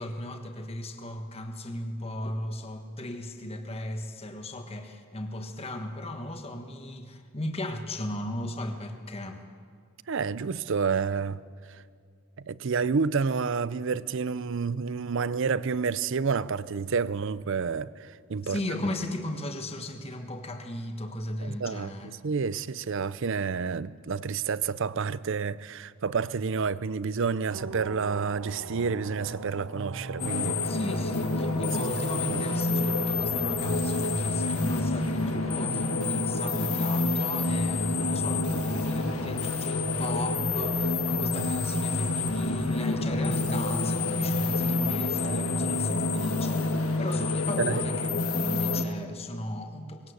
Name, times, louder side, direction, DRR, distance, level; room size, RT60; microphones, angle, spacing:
voice 1, 0.0-9.4 18.4-22.1 30.6-50.1, left 1 dB, 30° left, 1.3 m, -36 dB
voice 2, 10.1-11.4 12.4-18.6 21.4-21.9 22.2-30.6 31.6-31.8 32.3-32.4 47.6-47.8, right 5 dB, 60° right, 0.5 m, -29 dB
sound 1, 27.5-45.0, right 3 dB, 85° right, 1.0 m, -41 dB
sound 2, 30.2-48.8, left 3 dB, 80° left, 1.7 m, -28 dB
20.5 x 17.5 x 8.0 m
head